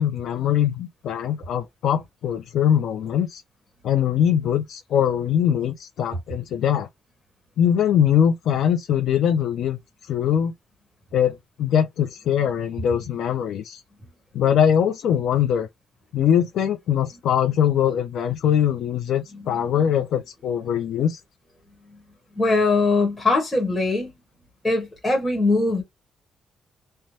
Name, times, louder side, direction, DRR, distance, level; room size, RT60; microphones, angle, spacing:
voice 1, 0.0-3.4 3.8-6.9 7.6-10.5 11.1-13.8 14.3-15.7 16.1-21.2, left 9 dB, 70° left, 0.5 m, -22 dB
voice 2, 22.3-24.1 24.6-25.8, left 3 dB, 15° left, 1.3 m, -21 dB
3.2 x 2.2 x 2.7 m
cardioid pair, 160°, 0 cm